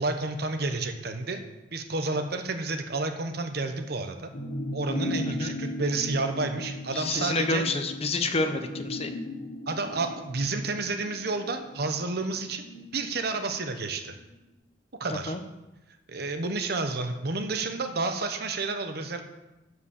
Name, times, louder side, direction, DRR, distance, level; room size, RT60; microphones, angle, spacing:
voice 1, 0.0-1.4 1.7-4.3 4.7-7.6 9.7-12.6 12.9-14.2 15.0-15.3 16.1-19.2, right 3 dB, 60° right, 7 dB, 1.0 m, -30 dB
sound 1, 4.3-14.2 14.5-14.6, left 1 dB, 55° left, 1.3 m, -37 dB
voice 2, 6.9-9.1 15.1-15.4, left 3 dB, 35° left, 7 dB, 0.8 m, -29 dB
11.0 x 4.9 x 6.6 m, 1.0 s
head